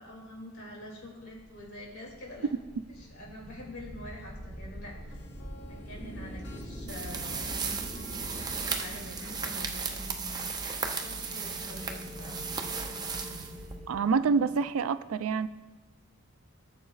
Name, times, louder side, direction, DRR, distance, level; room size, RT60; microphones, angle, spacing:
voice 1, 0.0-2.5 3.0-5.2 5.7-7.5 8.3-10.5 10.9-12.4, left 1 dB, 85° left, -2 dB, 2.5 m, -46 dB
sound 1, 1.3-14.7, equal, 5° left, 2.1 m, -45 dB
sound 2, 5.1-13.4, left 2 dB, 60° left, 1.0 m, -55 dB
sound 3, 6.9-14.0, right 5 dB, 20° right, 0.6 m, -36 dB
voice 2, 13.9-15.5, right 5 dB, 85° right, 14 dB, 0.4 m, -27 dB
14.5 x 7.4 x 2.4 m, 1.2 s
head